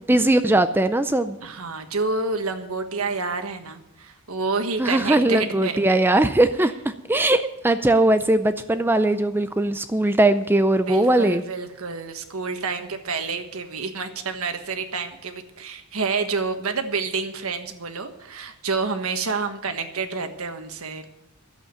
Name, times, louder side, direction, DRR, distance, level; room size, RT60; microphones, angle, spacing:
voice 1, 0.1-1.4 4.8-11.4, right 1 dB, 10° right, 11 dB, 0.4 m, -20 dB
voice 2, 1.4-5.8 10.9-21.1, right 4 dB, 80° right, 7 dB, 1.4 m, -28 dB
11.5 x 8.2 x 9.1 m, 0.86 s
head